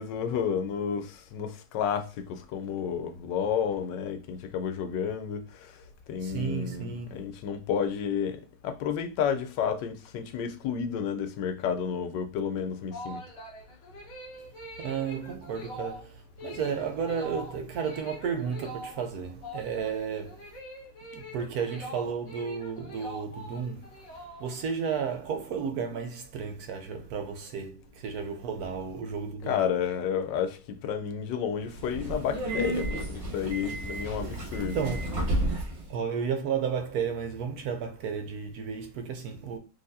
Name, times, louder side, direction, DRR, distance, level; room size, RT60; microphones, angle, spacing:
voice 1, 0.0-13.2 29.4-34.9, left 7 dB, 85° left, 1.3 m, -31 dB
voice 2, 6.2-7.2 14.8-20.6 21.1-23.9 24.4-29.6 34.6-35.4 35.9-39.6, right 6 dB, 70° right, 1.0 m, -33 dB
sound 1, 12.6-24.8, equal, 40° left, 1.5 m, -44 dB
Subway metro underground, 31.6-35.9, right 1 dB, 45° right, 1.0 m, -32 dB
4.0 x 2.9 x 2.6 m
omnidirectional pair, 1.9 m